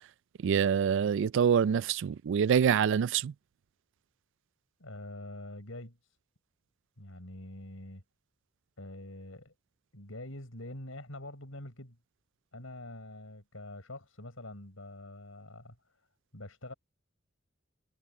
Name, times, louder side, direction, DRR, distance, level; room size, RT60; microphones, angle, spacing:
voice 1, 0.4-3.3, right 7 dB, 65° right, 0.3 m, -26 dB
voice 2, 4.8-6.2 7.0-8.0 8.8-9.5 9.9-12.0 12.5-15.8 16.3-16.7, left 1 dB, 80° left, 6.6 m, -45 dB
head